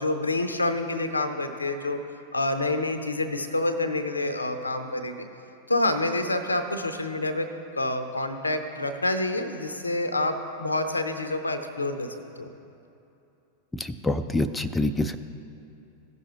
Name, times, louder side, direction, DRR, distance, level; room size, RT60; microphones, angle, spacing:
voice 1, 0.0-2.0 2.3-5.3 5.7-7.5 7.8-12.5, left 2 dB, 80° left, 9 dB, 0.6 m, -27 dB
voice 2, 13.8-15.2, left 2 dB, 10° left, 8 dB, 0.4 m, -26 dB
16.0 x 6.3 x 3.0 m, 2.8 s
figure-of-eight pair, 90°, 0 cm